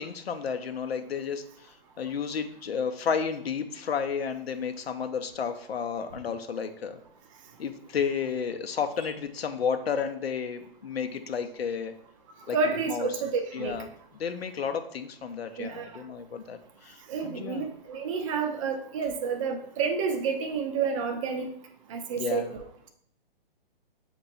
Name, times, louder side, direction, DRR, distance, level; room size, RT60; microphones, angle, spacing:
voice 1, 0.0-1.4 2.0-7.0 7.6-11.9 12.5-12.6 12.9-13.1 13.5-13.9 14.2-17.0 17.2-17.7 22.2-22.5, left 6 dB, 85° left, 7 dB, 0.6 m, -32 dB
voice 2, 12.5-13.7 15.6-15.9 17.1-21.5 21.9-22.6, right 5 dB, 35° right, 5 dB, 0.5 m, -29 dB
6.8 x 3.0 x 2.6 m, 0.66 s
hypercardioid pair, 145°, 30 cm